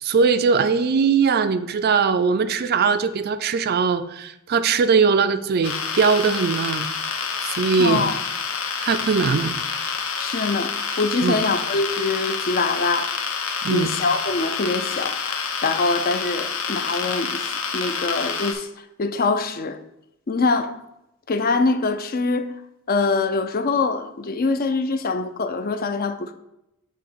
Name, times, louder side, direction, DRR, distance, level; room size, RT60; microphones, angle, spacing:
voice 1, 0.0-6.9 7.4-8.1 8.8-9.5 11.2-11.4 13.6-13.9, right 5 dB, 45° right, 0.4 m, -20 dB
sound 1, 5.6-18.5, left 5 dB, 70° left, 0.8 m, -28 dB
voice 2, 7.8-8.2 10.2-13.1 13.7-17.4 17.7-18.7 19.0-19.8 20.3-20.8 21.3-22.5 22.9-26.3, left 3 dB, 45° left, 0.5 m, -24 dB
7.3 x 2.8 x 5.8 m
head